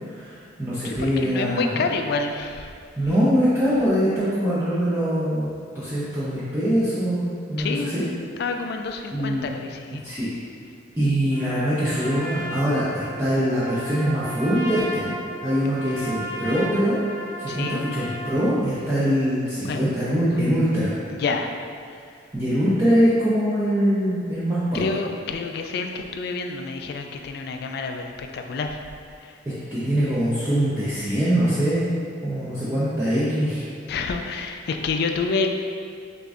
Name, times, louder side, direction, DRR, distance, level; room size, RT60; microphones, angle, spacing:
voice 1, 0.1-1.8 3.0-5.5 5.7-7.2 7.5-8.0 9.1-9.5 10.0-10.3 11.0-15.2 15.4-17.0 17.4-20.9 22.3-24.9 29.7-31.8 32.2-33.6, equal, 15° right, -13 dB, 0.6 m, -23 dB
voice 2, 0.8-2.7 7.6-8.0 8.4-10.0 17.5-17.8 19.6-19.8 21.1-21.5 21.9-22.0 24.7-28.8 29.2-29.4 33.9-35.5, left 4 dB, 55° left, 4 dB, 0.3 m, -28 dB
Trumpet, 11.3-18.5, equal, 70° right, 0.9 m, -34 dB
6.4 x 2.6 x 2.4 m, 2.3 s
head